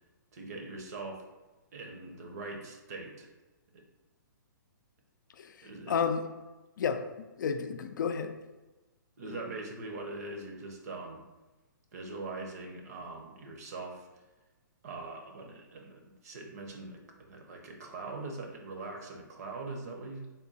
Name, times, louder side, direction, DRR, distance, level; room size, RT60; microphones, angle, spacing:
voice 1, 0.3-1.3 1.7-3.3 5.6-6.0 9.2-11.2 11.9-14.1 14.8-17.0 17.3-20.3, right 3 dB, 50° right, 2 dB, 0.8 m, -42 dB
voice 2, 5.4-6.2 6.8-7.0 7.4-8.4, left 6 dB, 65° left, 7 dB, 0.4 m, -31 dB
3.6 x 2.3 x 4.0 m, 1.1 s
hypercardioid pair, 160°, 11 cm